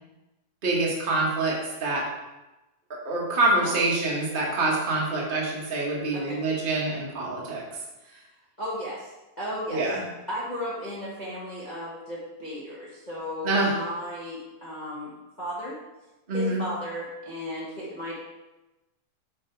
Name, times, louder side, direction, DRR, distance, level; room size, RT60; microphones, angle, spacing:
voice 1, 0.6-2.1 3.0-7.6 9.7-10.0 13.4-13.8 16.3-16.6, right 2 dB, 35° right, -4 dB, 0.8 m, -26 dB
voice 2, 8.6-9.1 9.4-9.8 10.3-15.1 15.4-15.8 16.3-18.2, equal, 30° left, -7 dB, 0.8 m, -34 dB
7.6 x 4.2 x 4.6 m, 1.0 s
omnidirectional pair, 3.5 m